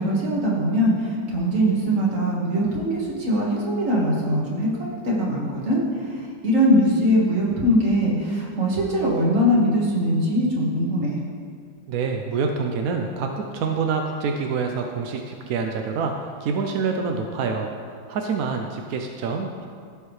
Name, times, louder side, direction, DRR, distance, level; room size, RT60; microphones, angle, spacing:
voice 1, 0.0-11.2, equal, 45° right, -4 dB, 2.0 m, -22 dB
voice 2, 11.9-19.7, right 5 dB, 70° right, 3 dB, 0.8 m, -26 dB
15.5 x 5.4 x 3.2 m, 2.1 s
omnidirectional pair, 2.1 m